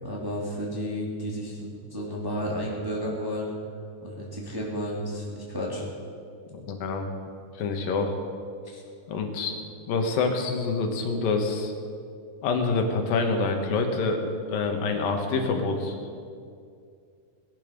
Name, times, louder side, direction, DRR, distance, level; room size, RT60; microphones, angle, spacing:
voice 1, 0.0-3.5 4.0-5.8 8.7-8.8, equal, 10° right, -4 dB, 1.9 m, -32 dB
voice 2, 6.5-7.1 7.6-8.1 9.1-9.6 9.9-11.7 12.4-14.2 14.5-16.0, left 4 dB, 85° left, 4 dB, 3.1 m, -26 dB
19.0 x 11.5 x 5.2 m, 2.3 s
omnidirectional pair, 3.9 m